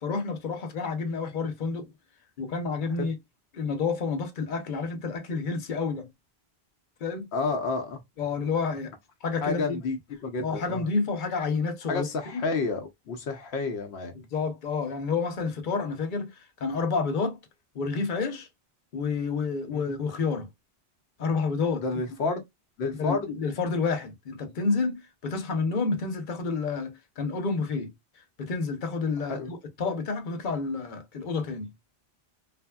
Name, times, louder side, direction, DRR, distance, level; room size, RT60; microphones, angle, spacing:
voice 1, 0.0-1.9 2.4-3.1 3.5-6.1 7.0-7.3 8.2-8.9 9.2-9.8 10.4-12.1 12.3-12.4 14.1-17.4 17.7-18.5 18.9-20.5 21.2-21.8 22.3-22.4 23.0-27.9 28.4-31.7, left 4 dB, 50° left, 0.9 m, -29 dB
voice 2, 7.3-8.0 9.4-10.8 11.9-14.1 19.7-19.9 21.8-22.4 22.8-23.3 29.3-29.5, left 4 dB, 80° left, 0.9 m, -30 dB
3.3 x 2.1 x 2.2 m
omnidirectional pair, 1.1 m